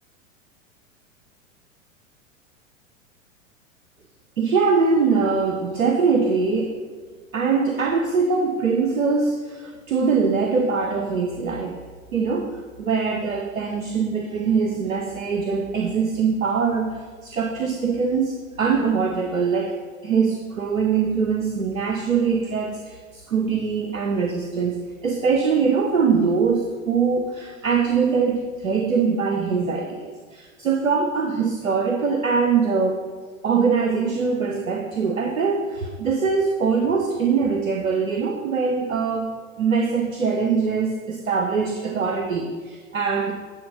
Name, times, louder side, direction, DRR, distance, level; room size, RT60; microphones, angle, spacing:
voice 1, 4.4-6.8 7.3-11.8 12.1-12.5 12.8-19.8 20.0-33.1 33.4-43.3, right 5 dB, 80° right, 4 dB, 0.8 m, -22 dB
9.5 x 3.7 x 5.4 m, 1.5 s
figure-of-eight pair, 95°, 40 cm